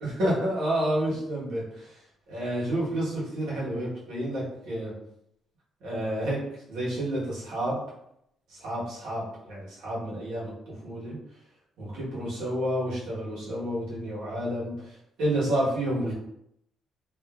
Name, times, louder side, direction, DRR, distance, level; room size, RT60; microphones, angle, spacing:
voice 1, 0.0-2.0 2.3-4.9 5.8-6.4 6.7-7.8 8.5-11.2 11.8-16.1, right 1 dB, 85° right, -7 dB, 1.3 m, -30 dB
2.6 x 2.5 x 2.4 m, 0.77 s
cardioid pair, 90°, 0 cm